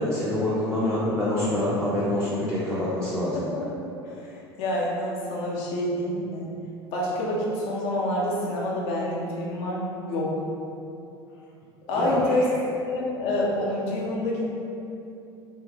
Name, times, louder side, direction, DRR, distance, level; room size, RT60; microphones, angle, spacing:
voice 1, 0.0-3.6 11.9-12.4, left 1 dB, 5° left, -10 dB, 0.4 m, -26 dB
voice 2, 3.3-3.7 4.0-6.5 6.9-10.3 11.9-14.5, left 1 dB, 50° left, -4 dB, 0.6 m, -27 dB
2.7 x 2.1 x 3.1 m, 2.7 s
figure-of-eight pair, 70°, 14 cm